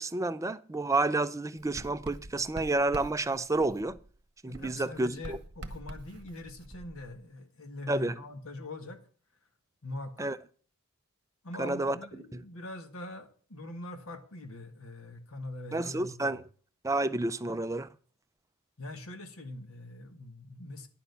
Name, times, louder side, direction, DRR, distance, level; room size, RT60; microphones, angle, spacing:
voice 1, 0.0-4.0 4.4-5.4 7.9-8.2 10.2-10.4 11.6-12.0 12.3-12.4 15.7-16.4 16.8-17.9, right 2 dB, 15° right, 0.4 m, -30 dB
Writing, 1.6-4.2 4.5-7.2, right 1 dB, 50° right, 1.1 m, -46 dB
voice 2, 4.5-9.0 9.8-10.3 11.4-16.4 18.8-20.9, left 2 dB, 65° left, 1.6 m, -43 dB
10.0 x 6.6 x 6.8 m
head